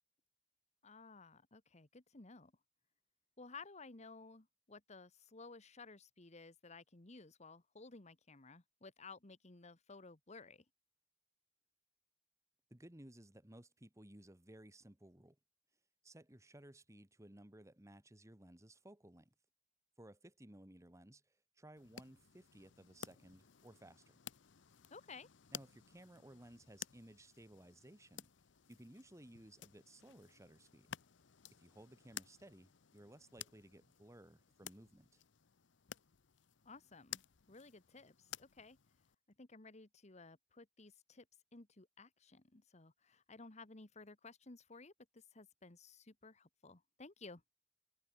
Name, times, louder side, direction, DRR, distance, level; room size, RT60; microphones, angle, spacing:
voice 1, 0.8-2.5 3.4-10.6 24.9-25.3 36.6-37.2 37.5-38.8 39.4-41.2 41.5-47.4, left 3 dB, 40° left, 1.5 m, -56 dB
voice 2, 12.7-15.4 16.0-19.3 20.0-24.2 25.5-28.3 28.7-31.0 31.6-35.2, right 1 dB, 15° right, 1.9 m, -59 dB
sound 1, 21.8-39.2, left 10 dB, 70° left, 0.8 m, -55 dB
head